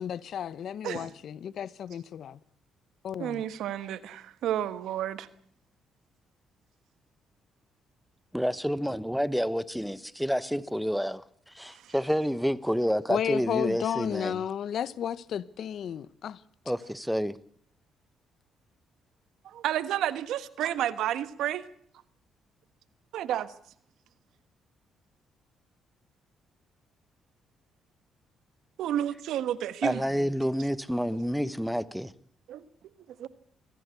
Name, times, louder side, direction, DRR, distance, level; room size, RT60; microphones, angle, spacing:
voice 1, 0.0-2.4 3.0-3.4 13.1-16.4, left 9 dB, 65° left, 0.9 m, -33 dB
voice 2, 3.2-5.3 11.8-11.9 19.4-21.6 23.1-23.5 28.8-30.3 32.5-32.6 33.2-33.3, right 11 dB, 80° right, 1.3 m, -31 dB
voice 3, 8.3-14.4 16.7-17.4 29.8-32.1, equal, ahead, 1.1 m, -29 dB
23.0 x 16.0 x 8.3 m
supercardioid pair, 70°, 0 cm